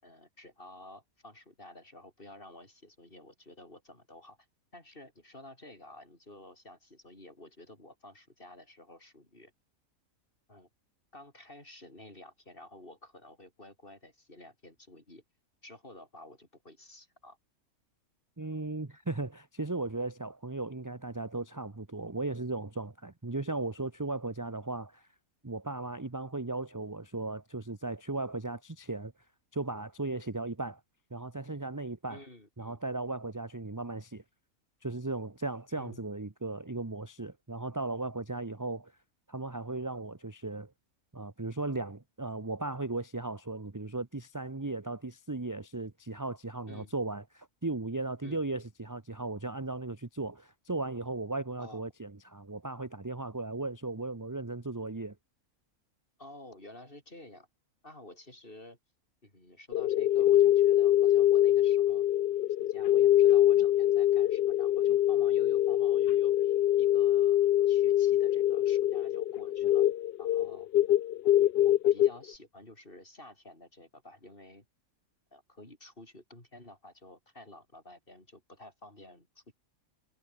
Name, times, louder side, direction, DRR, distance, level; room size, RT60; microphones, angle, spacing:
voice 1, 0.0-4.4 4.7-9.5 10.5-10.7 11.1-15.2 15.6-17.4 32.1-32.8 35.7-36.0 46.7-46.9 48.2-48.4 51.6-51.9 56.2-57.5 57.8-58.8 59.2-62.0 62.6-67.4 67.7-69.9 70.2-70.7 71.6-74.6 75.3-79.5, left 1 dB, 40° left, 6.2 m, -51 dB
voice 2, 18.4-25.1 25.4-29.1 29.5-30.8 31.1-32.2 32.6-34.2 34.8-38.9 39.3-40.7 41.1-55.1, right 2 dB, 15° right, 0.9 m, -36 dB
sound 1, 59.7-72.1, left 12 dB, 65° left, 0.6 m, -24 dB
omnidirectional pair, 1.5 m